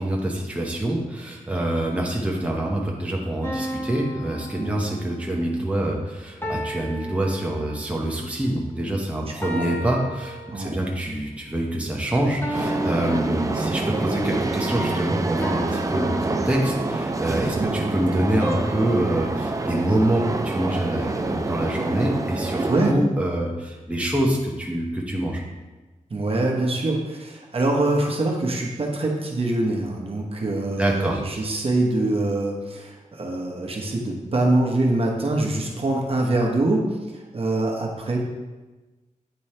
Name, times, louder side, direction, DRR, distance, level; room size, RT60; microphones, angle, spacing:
voice 1, 0.0-25.4 30.8-31.2, right 1 dB, 10° right, -2 dB, 0.9 m, -25 dB
sound 1, 3.4-5.4 6.4-8.1 9.4-11.0 12.4-14.1 15.4-17.0 18.4-20.7, equal, 15° left, 1.0 m, -34 dB
sound 2, 12.5-22.9, right 2 dB, 25° right, 0.5 m, -27 dB
voice 2, 26.1-38.2, right 2 dB, 45° right, -1 dB, 1.1 m, -24 dB
8.8 x 3.1 x 4.3 m, 1.2 s
wide cardioid pair, 95°, 13 cm